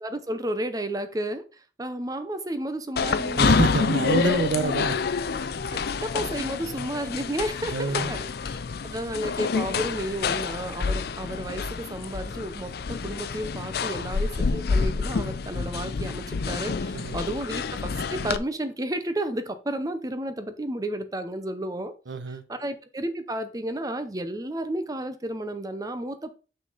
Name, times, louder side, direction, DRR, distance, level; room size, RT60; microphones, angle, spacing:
voice 1, 0.0-3.5 4.3-4.4 6.0-8.6 8.8-21.9 22.3-26.3, right 1 dB, 20° right, 0.6 m, -32 dB
sound 1, 3.0-18.4, left 5 dB, 55° left, 0.4 m, -28 dB
voice 2, 3.4-5.0 7.7-8.1 16.9-17.2 22.1-22.4, right 3 dB, 70° right, 0.7 m, -26 dB
6.2 x 5.7 x 3.9 m
head